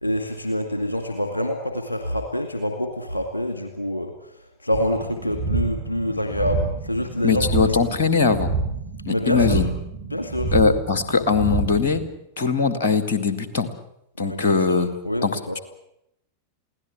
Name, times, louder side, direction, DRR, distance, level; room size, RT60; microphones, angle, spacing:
voice 1, 0.0-4.1 4.6-7.7 9.1-9.6 10.1-10.5 14.2-14.8 15.0-15.6, left 1 dB, 80° left, 5 dB, 2.1 m, -26 dB
sound 1, 4.7-12.1, right 4 dB, 55° right, 4.8 m, -28 dB
voice 2, 7.2-8.5 9.1-9.7 10.5-12.0 12.4-13.7 14.2-14.9 15.2-15.6, left 5 dB, 60° left, 11 dB, 2.2 m, -21 dB
23.0 x 17.0 x 8.7 m, 0.80 s
figure-of-eight pair, 90°, 0 cm